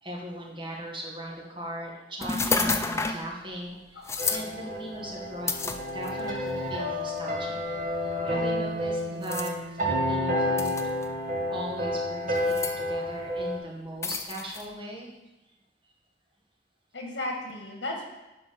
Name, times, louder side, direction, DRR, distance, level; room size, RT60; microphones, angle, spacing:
voice 1, 0.0-7.6 7.9-10.9 11.5-15.1, right 1 dB, 25° right, -3 dB, 1.9 m, -39 dB
sound 1, 2.2-3.3 4.0-4.4 5.5-6.3 7.1-7.2 9.2-9.5 10.6-11.0 12.4-12.8 14.0-14.6, left 4 dB, 15° left, 0.4 m, -29 dB
voice 2, 3.9-4.3 8.1-8.3 16.9-18.0, left 1 dB, 75° left, 1 dB, 1.9 m, -35 dB
sound 2, 4.2-13.6, left 1 dB, 45° right, 1.8 m, -30 dB
11.0 x 4.9 x 5.4 m, 0.99 s
head